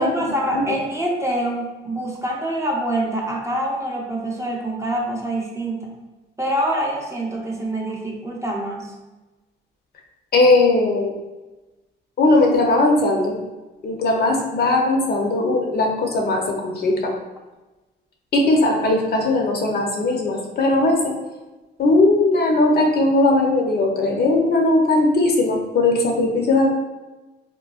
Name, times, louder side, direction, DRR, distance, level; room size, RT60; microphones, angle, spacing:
voice 1, 0.0-5.9 6.4-9.0, right 1 dB, 15° right, -1 dB, 0.5 m, -25 dB
voice 2, 10.3-11.1 12.2-13.3 13.8-17.2 18.3-21.1 21.8-26.7, left 2 dB, 55° left, 1 dB, 0.7 m, -18 dB
3.6 x 2.1 x 2.4 m, 1.1 s
cardioid pair, 90°, 20 cm